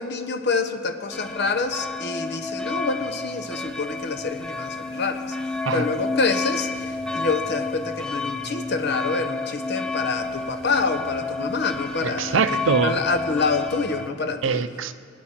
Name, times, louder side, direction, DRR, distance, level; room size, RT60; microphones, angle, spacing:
voice 1, 0.0-5.2 5.7-12.4 12.8-14.6, left 4 dB, 55° left, 8 dB, 0.9 m, -27 dB
sound 1, 1.1-14.1, left 3 dB, 5° left, 0.5 m, -30 dB
voice 2, 12.0-13.0 14.4-14.9, right 5 dB, 65° right, 11 dB, 0.5 m, -23 dB
22.0 x 8.3 x 4.3 m, 2.3 s
head